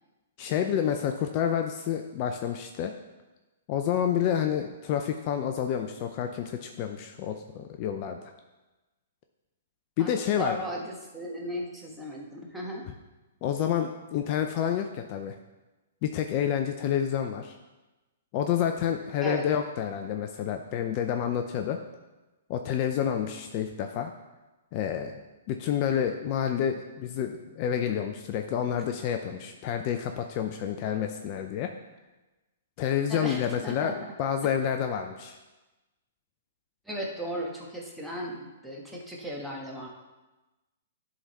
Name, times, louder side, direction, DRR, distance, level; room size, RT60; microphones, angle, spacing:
voice 1, 0.4-2.9 3.7-8.2 10.0-10.6 13.4-15.4 16.0-17.5 18.3-21.8 22.5-24.1 24.7-31.7 32.8-35.4, left 9 dB, 40° left, 5 dB, 0.5 m, -29 dB
voice 2, 10.4-12.8 19.2-19.5 33.1-34.1 36.9-39.9, equal, ahead, -3 dB, 1.4 m, -36 dB
11.0 x 3.8 x 4.2 m, 1.1 s
hypercardioid pair, 120°, 0 cm